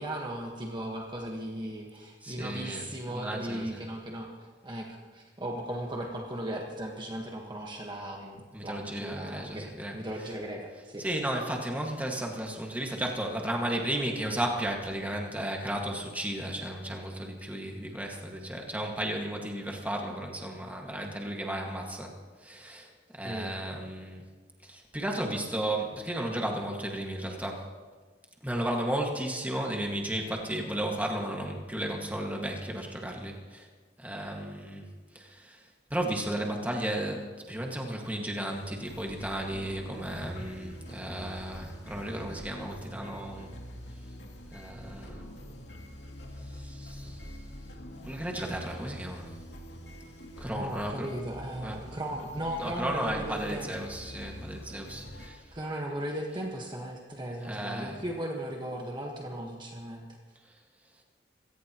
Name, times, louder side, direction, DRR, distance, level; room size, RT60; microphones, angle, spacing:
voice 1, 0.0-11.1 23.2-23.5 50.5-53.9 55.5-60.1, right 1 dB, 25° right, 0 dB, 1.5 m, -37 dB
voice 2, 2.2-2.8 3.1-3.8 8.5-9.9 11.0-22.1 22.4-22.9 23.2-24.2 24.7-27.7 28.4-33.7 34.0-34.9 35.2-35.6 35.9-43.5 44.5-45.2 46.6-47.1 48.1-49.2 50.4-51.1 51.6-51.8 52.6-55.4 57.5-57.9, right 1 dB, 10° right, 0 dB, 1.9 m, -34 dB
sound 1, 38.5-55.3, equal, 70° left, 2.7 m, -45 dB
25.5 x 17.5 x 3.1 m, 1.4 s
head